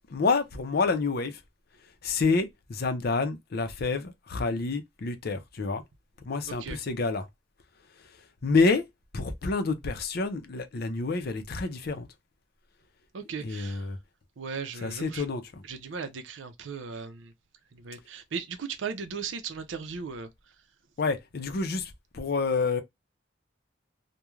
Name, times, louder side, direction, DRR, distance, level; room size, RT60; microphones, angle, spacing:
voice 1, 0.1-1.4 2.0-5.8 6.2-7.3 8.4-8.8 9.1-12.1 13.4-14.0 14.8-15.6 21.0-22.8, left 4 dB, 55° left, 0.5 m, -28 dB
voice 2, 6.5-6.8 13.1-13.9 14.4-15.2 15.6-17.3 17.7-20.3, right 5 dB, 85° right, 0.5 m, -37 dB
2.4 x 2.2 x 3.0 m
head